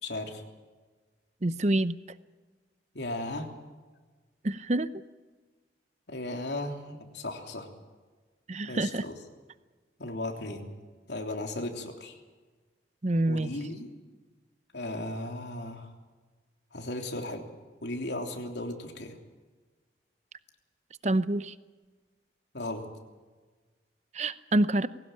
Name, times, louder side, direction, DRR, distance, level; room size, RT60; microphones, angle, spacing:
voice 1, 0.0-0.4 2.9-3.5 6.1-7.7 8.7-9.1 10.0-10.7 11.1-12.2 13.3-13.9 14.7-15.9 16.7-17.5 17.8-19.2 22.5-22.9, left 1 dB, 70° left, 3 dB, 3.3 m, -36 dB
voice 2, 1.4-2.0 4.4-4.9 8.5-9.0 13.0-13.5 21.0-21.5 24.1-24.9, right 1 dB, 40° right, 14 dB, 0.7 m, -26 dB
21.5 x 18.0 x 8.9 m, 1.3 s
head